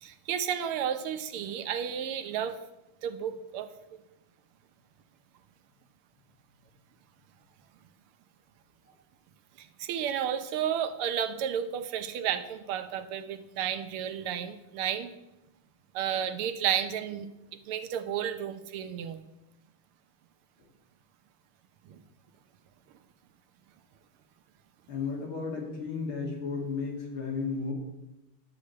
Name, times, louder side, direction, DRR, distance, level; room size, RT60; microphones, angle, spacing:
voice 1, 0.0-2.6 3.0-3.7 9.6-15.1 15.9-19.2 21.8-22.0, right 9 dB, 80° right, 10 dB, 1.7 m, -32 dB
voice 2, 24.9-27.7, left 4 dB, 70° left, -1 dB, 3.1 m, -34 dB
11.5 x 5.0 x 8.3 m, 0.96 s
omnidirectional pair, 2.4 m